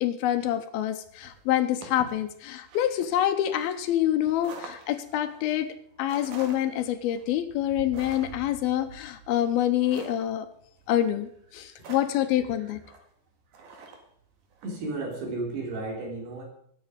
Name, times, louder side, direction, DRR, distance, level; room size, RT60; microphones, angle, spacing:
voice 1, 0.0-5.7 6.0-10.5 10.9-12.8, left 12 dB, 75° left, 9 dB, 2.5 m, -26 dB
sound 1, 1.0-14.8, right 4 dB, 55° right, 3.1 m, -47 dB
voice 2, 14.6-16.4, right 2 dB, 70° right, 0 dB, 5.5 m, -33 dB
19.5 x 9.0 x 5.1 m, 0.64 s
omnidirectional pair, 4.8 m